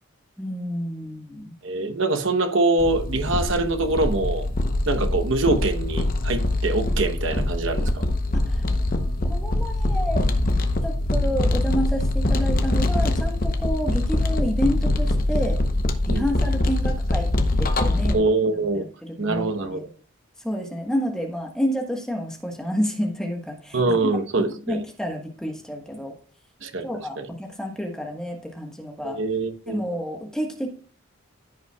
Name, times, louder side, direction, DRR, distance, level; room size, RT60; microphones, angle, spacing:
voice 1, 0.4-1.6 8.3-8.6 9.3-10.3 10.8-15.6 16.1-17.3 17.6-18.2 18.5-19.9 20.4-23.8 24.3-26.1 26.8-29.2 29.7-30.7, equal, 5° left, 1.2 m, -29 dB
voice 2, 1.6-4.5 4.9-8.0 16.1-16.2 18.1-18.9 19.2-19.8 23.7-24.8 26.6-26.9 27.2-27.3 29.0-29.8, right 2 dB, 60° right, 1.0 m, -24 dB
sound 1, 2.8-18.1, left 1 dB, 40° left, 0.8 m, -23 dB
14.0 x 5.6 x 2.3 m
head